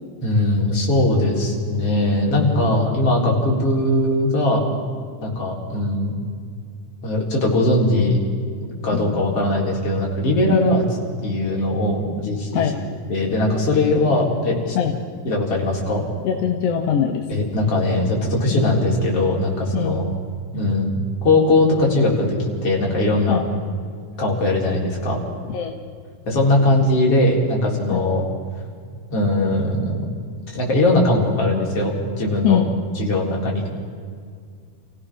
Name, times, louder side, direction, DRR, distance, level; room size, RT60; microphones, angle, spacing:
voice 1, 0.2-4.6 5.2-6.1 7.0-8.2 8.8-10.8 11.2-12.6 13.1-14.8 15.2-16.1 17.3-20.1 20.5-20.9 21.2-23.4 24.2-25.2 26.3-28.2 29.1-30.1 30.5-32.6 33.0-33.7, left 1 dB, 45° left, -2 dB, 4.9 m, -20 dB
voice 2, 16.2-17.3 18.5-18.7 19.7-20.0 23.3-23.5 25.5-25.7 27.9-28.1 32.4-32.7, left 9 dB, 60° left, 2 dB, 2.0 m, -22 dB
28.0 x 16.5 x 6.2 m, 2.1 s
omnidirectional pair, 3.8 m